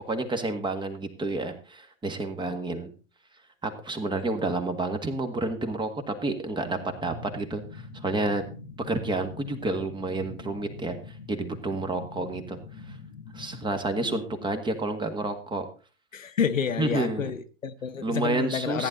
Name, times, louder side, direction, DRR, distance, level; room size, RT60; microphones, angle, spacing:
voice 1, 0.1-2.9 3.6-8.4 8.8-12.6 12.9-13.0 13.3-15.6 16.8-17.3 18.0-18.9, right 2 dB, 10° right, 1.8 m, -30 dB
sound 1, 6.6-13.8, left 4 dB, 55° left, 1.6 m, -44 dB
voice 2, 13.9-14.3 16.1-18.9, left 7 dB, 90° left, 1.1 m, -30 dB
14.5 x 9.9 x 3.9 m
hypercardioid pair, 115°, 38 cm